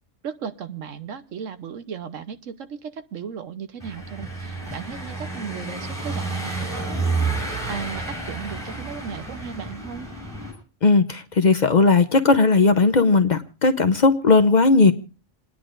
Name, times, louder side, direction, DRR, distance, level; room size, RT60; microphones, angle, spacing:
voice 1, 0.2-7.0 7.7-10.1, right 7 dB, 85° right, 1.3 m, -36 dB
Car passing by / Engine, 3.8-10.5, right 3 dB, 10° right, 7.2 m, -30 dB
voice 2, 10.8-14.9, left 3 dB, 45° left, 0.7 m, -17 dB
28.5 x 10.0 x 2.5 m
omnidirectional pair, 1.3 m